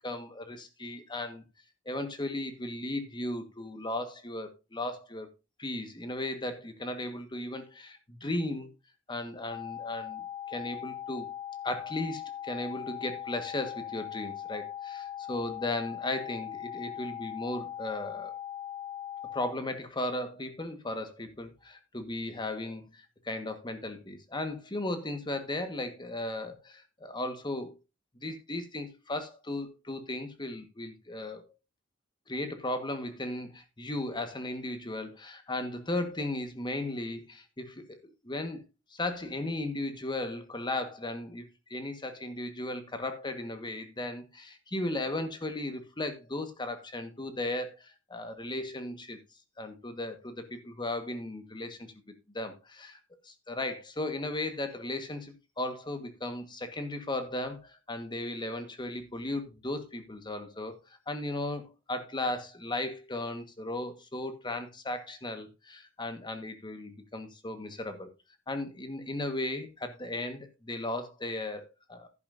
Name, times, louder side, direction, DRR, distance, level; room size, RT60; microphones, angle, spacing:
voice 1, 0.0-1.4 1.8-5.3 5.6-8.7 9.1-11.3 11.6-18.3 19.3-27.7 28.2-31.4 32.3-38.7 38.9-49.2 49.6-51.9 52.3-60.7 61.1-68.1 68.5-72.1, left 1 dB, 25° left, 1.5 m, -36 dB
sound 1, 9.5-19.5, left 10 dB, 50° left, 1.9 m, -40 dB
11.0 x 10.5 x 2.6 m
head